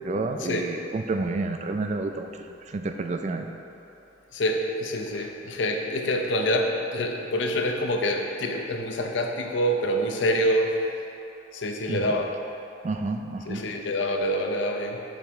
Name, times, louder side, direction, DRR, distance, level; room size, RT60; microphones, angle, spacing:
voice 1, 0.0-2.3 2.7-3.5 11.9-12.2 12.8-13.6, right 3 dB, 40° right, 6 dB, 0.4 m, -29 dB
voice 2, 4.3-10.7 11.5-12.3 13.5-15.0, equal, 90° left, 2 dB, 0.6 m, -26 dB
7.4 x 5.1 x 3.6 m, 2.8 s
head